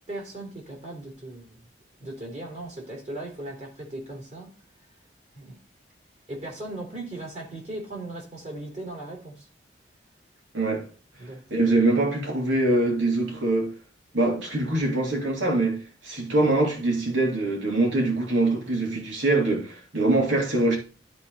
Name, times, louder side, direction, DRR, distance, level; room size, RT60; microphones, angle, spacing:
voice 1, 0.1-1.7 2.0-4.5 5.3-5.6 6.3-9.5 11.2-11.4, right 2 dB, 35° right, 2.9 m, -38 dB
voice 2, 10.5-10.9 11.5-13.7 14.1-20.8, right 2 dB, 90° right, 2.9 m, -23 dB
13.0 x 4.3 x 4.0 m
head